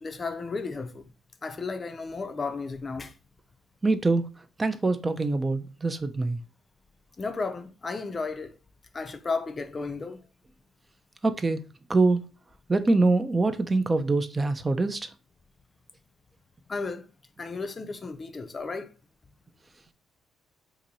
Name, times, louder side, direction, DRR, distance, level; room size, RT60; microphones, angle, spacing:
voice 1, 0.0-1.1 1.4-3.1 7.2-8.5 8.9-10.2 16.7-17.1 17.4-18.9, left 4 dB, 35° left, 0.5 m, -33 dB
voice 2, 3.8-4.3 4.6-6.4 11.2-11.6 11.9-12.2 12.7-15.1, right 3 dB, 25° right, 0.4 m, -24 dB
2.8 x 2.6 x 3.9 m
cardioid pair, 90°, 0 cm